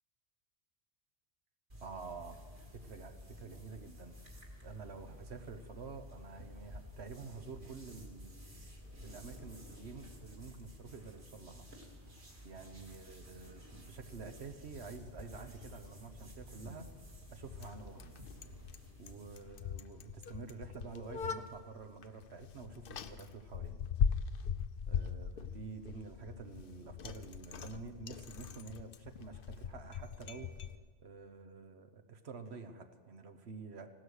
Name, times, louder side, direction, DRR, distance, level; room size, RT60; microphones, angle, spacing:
sound 1, 1.7-19.5, left 1 dB, 45° right, 2.7 m, -53 dB
voice 1, 1.8-2.4 2.7-4.1 4.6-8.6 9.0-11.7 12.4-16.9 17.3-18.1 19.0-23.8 24.9-30.6 31.0-33.9, right 4 dB, 60° right, 7 dB, 1.3 m, -49 dB
Bicycle, 14.5-30.8, left 7 dB, 55° left, 0.8 m, -41 dB
16.0 x 12.5 x 6.5 m, 1.5 s
omnidirectional pair, 1.2 m